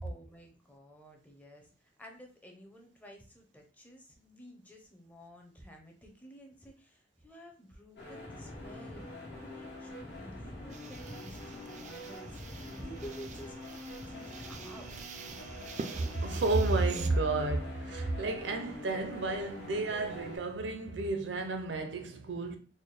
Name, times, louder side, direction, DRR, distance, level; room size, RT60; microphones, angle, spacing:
voice 1, 0.0-13.6 14.0-14.9, equal, 10° left, 0.6 m, -52 dB
sound 1, 8.0-20.4, left 1 dB, 65° left, 1.3 m, -45 dB
sound 2, 10.7-17.1, right 4 dB, 40° right, 0.4 m, -46 dB
voice 2, 15.4-22.6, right 3 dB, 80° right, 0.6 m, -32 dB
4.1 x 2.2 x 3.3 m
head